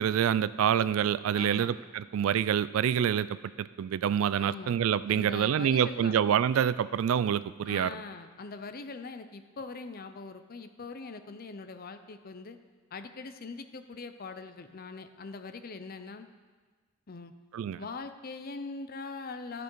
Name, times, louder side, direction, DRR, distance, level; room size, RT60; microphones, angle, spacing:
voice 1, 0.0-7.9 17.5-17.8, right 9 dB, 75° right, 17 dB, 0.3 m, -27 dB
voice 2, 1.3-1.7 4.4-4.8 5.1-6.2 7.6-12.6 12.9-16.3 17.1-17.3 17.8-19.6, left 4 dB, 45° left, 9 dB, 0.6 m, -42 dB
13.5 x 7.0 x 4.6 m, 1.4 s
head